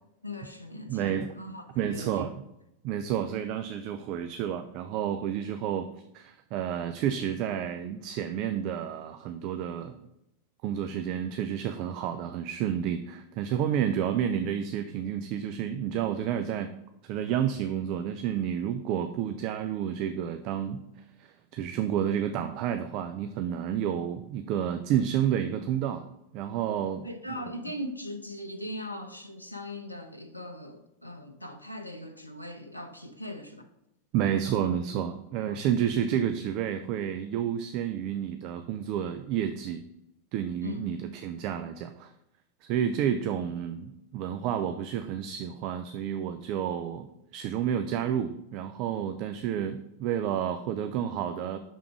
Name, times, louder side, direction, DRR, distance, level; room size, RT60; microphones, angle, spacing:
voice 1, 0.2-2.3 27.0-33.7 35.5-35.6 40.6-40.9, left 1 dB, 85° left, 6 dB, 0.5 m, -40 dB
voice 2, 0.9-1.3 1.8-2.3 2.8-5.9 6.1-10.0 10.6-16.7 17.0-20.8 21.2-26.1 26.3-27.4 34.1-39.8 40.3-42.1 42.6-47.1 47.3-51.6, right 9 dB, 40° right, 9 dB, 0.3 m, -30 dB
5.9 x 3.5 x 4.7 m, 0.85 s
figure-of-eight pair, 90°, 0 cm